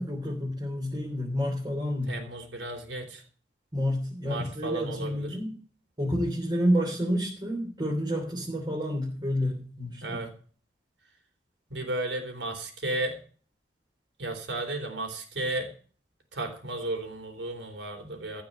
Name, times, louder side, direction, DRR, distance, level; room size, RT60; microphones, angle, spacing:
voice 1, 0.0-2.2 3.7-5.5 6.0-10.2, equal, 25° right, -3 dB, 3.6 m, -29 dB
voice 2, 2.1-3.2 4.2-5.3 10.0-10.3 11.7-13.2 14.2-15.7 16.3-18.4, right 2 dB, 75° right, 4 dB, 3.7 m, -34 dB
15.0 x 5.5 x 9.0 m, 0.42 s
head